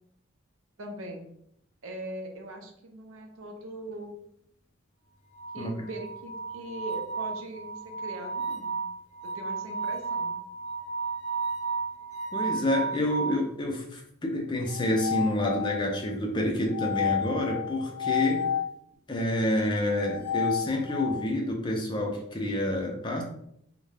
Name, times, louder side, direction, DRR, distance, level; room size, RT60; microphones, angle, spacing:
voice 1, 0.8-1.3 1.8-4.2 5.5-8.8 9.3-10.4, right 1 dB, 70° right, 3 dB, 0.5 m, -40 dB
sound 1, 5.3-13.4 14.7-16.0 16.7-18.7 19.9-21.3, left 1 dB, 85° left, 0.6 m, -32 dB
voice 2, 5.6-5.9 12.3-18.4 19.1-23.2, left 1 dB, 20° left, 1 dB, 0.4 m, -28 dB
2.3 x 2.1 x 3.2 m, 0.71 s
head